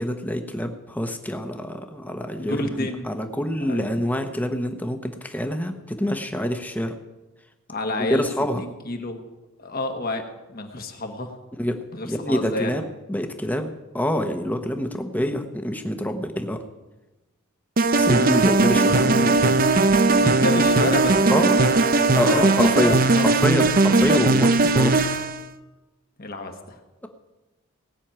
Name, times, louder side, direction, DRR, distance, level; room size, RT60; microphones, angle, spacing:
voice 1, 0.0-6.9 8.1-8.6 11.6-16.6 17.9-19.6 21.3-21.6 22.1-25.0, equal, 5° left, 6 dB, 1.1 m, -26 dB
voice 2, 2.3-3.1 3.7-3.9 7.7-8.3 8.6-9.2 9.6-11.3 11.9-12.7 20.1-23.2 26.2-26.8, left 2 dB, 45° left, 4 dB, 1.5 m, -29 dB
sound 1, 17.8-25.4, right 3 dB, 40° right, 0.7 m, -18 dB
19.0 x 6.3 x 8.8 m, 1.1 s
head